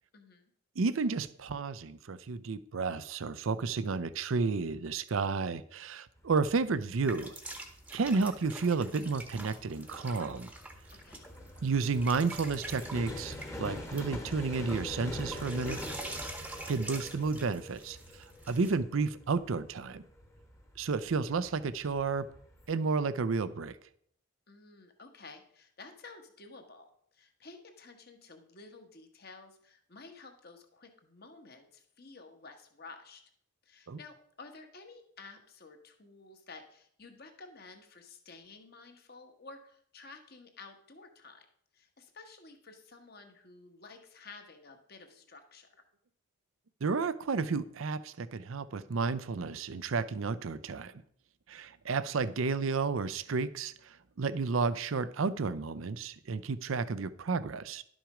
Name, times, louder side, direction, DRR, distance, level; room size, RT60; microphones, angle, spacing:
voice 1, 0.1-0.5 11.0-11.3 24.5-33.2 33.6-41.4 41.7-45.8, left 3 dB, 50° left, 5 dB, 1.3 m, -52 dB
voice 2, 0.8-7.3 7.9-10.5 11.6-15.8 16.7-18.0 18.5-20.0 20.8-22.3 22.7-23.8 33.9-34.0 46.8-50.9 51.5-57.8, right 4 dB, 80° right, 16 dB, 0.5 m, -32 dB
sound 1, 6.2-22.7, left 1 dB, 15° left, 1.1 m, -45 dB
sound 2, 7.1-18.7, right 2 dB, 5° right, 0.9 m, -46 dB
11.5 x 6.2 x 4.9 m, 0.66 s
head